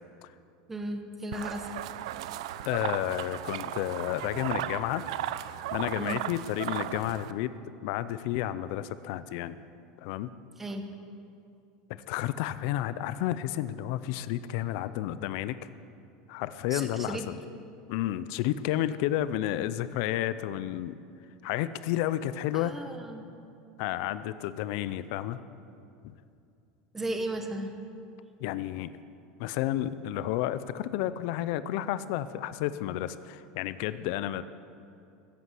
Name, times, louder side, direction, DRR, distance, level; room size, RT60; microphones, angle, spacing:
voice 1, 0.7-1.8 6.0-6.2 10.6-10.8 16.7-17.2 22.5-23.3 26.9-27.7, right 1 dB, 10° right, 5 dB, 0.9 m, -35 dB
sound 1, 1.3-7.3, right 12 dB, 75° right, 0.5 m, -36 dB
voice 2, 2.7-5.0 5.7-7.5 7.8-9.6 10.0-10.3 12.1-15.6 16.3-17.3 17.9-21.0 21.4-22.9 23.8-25.4 26.0-26.1 28.4-28.9 29.4-34.4, left 13 dB, 50° left, 14 dB, 0.5 m, -31 dB
15.0 x 8.4 x 7.6 m, 2.5 s
supercardioid pair, 180°, 3 cm